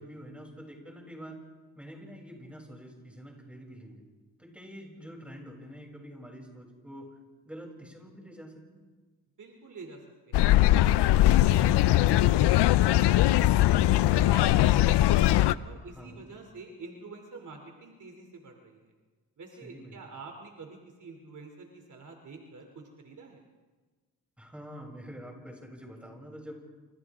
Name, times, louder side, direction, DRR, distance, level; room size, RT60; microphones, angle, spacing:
voice 1, 0.0-1.4 1.8-4.1 4.4-7.1 7.5-8.8 15.7-16.3 19.6-20.0 24.4-26.6, equal, 5° right, -1 dB, 7.3 m, -46 dB
voice 2, 9.4-10.0 10.3-13.2 13.5-14.8 15.1-15.3 15.6-18.9 19.4-23.4, right 3 dB, 45° right, 2 dB, 3.1 m, -47 dB
sound 1, 10.3-15.5, left 14 dB, 80° left, 0.7 m, -21 dB
29.5 x 28.0 x 3.7 m, 1.3 s
cardioid pair, 95°, 40 cm